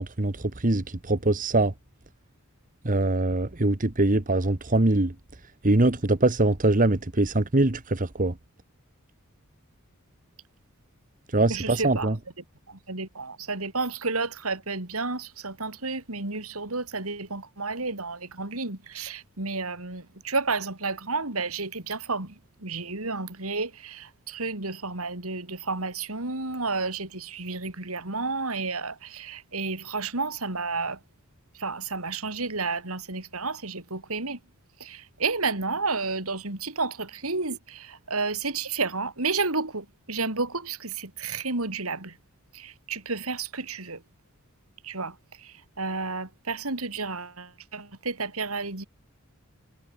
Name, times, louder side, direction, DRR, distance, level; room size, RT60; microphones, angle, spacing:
voice 1, 0.0-1.7 2.8-5.1 5.6-8.4 11.3-12.2, right 2 dB, 40° right, 1.3 m, -23 dB
voice 2, 11.5-12.1 12.7-31.0 31.5-34.4 34.8-42.2 42.5-44.0 44.8-48.8, right 3 dB, 80° right, 3.9 m, -31 dB
head